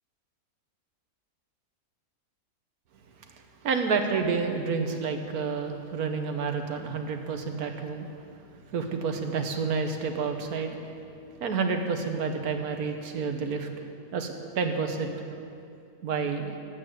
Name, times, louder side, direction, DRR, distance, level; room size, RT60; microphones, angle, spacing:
voice 1, 3.3-8.1 8.7-10.8 11.4-13.9 14.1-15.3 16.0-16.5, right 5 dB, 75° right, 5 dB, 1.6 m, -29 dB
12.5 x 8.3 x 9.0 m, 2.6 s
omnidirectional pair, 1.6 m